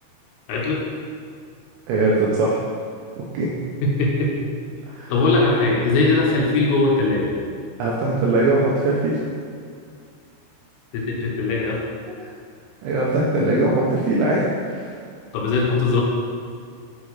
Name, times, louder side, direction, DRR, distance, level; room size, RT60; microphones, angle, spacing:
voice 1, 0.5-0.9 3.8-4.5 5.1-7.3 10.9-11.8 15.3-16.0, left 3 dB, 80° left, -2 dB, 3.8 m, -20 dB
voice 2, 1.9-2.6 3.3-3.5 4.9-5.1 7.8-9.2 12.8-14.9, right 2 dB, 80° right, -4 dB, 2.6 m, -20 dB
9.3 x 5.2 x 4.9 m, 2.2 s
omnidirectional pair, 6.0 m